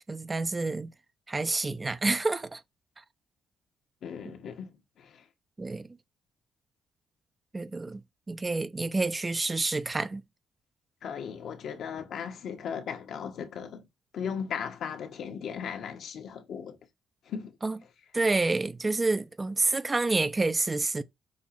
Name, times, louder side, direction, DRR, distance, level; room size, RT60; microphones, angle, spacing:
voice 1, 0.1-0.9 1.3-2.6 5.6-5.9 7.5-8.0 8.3-10.2 17.6-17.8 18.1-21.0, right 3 dB, 25° right, 0.6 m, -28 dB
voice 2, 4.0-4.7 5.0-5.2 11.0-13.8 14.1-16.8 17.3-17.5, left 7 dB, 70° left, 1.3 m, -37 dB
6.4 x 2.9 x 5.7 m
cardioid pair, 90°, 0 cm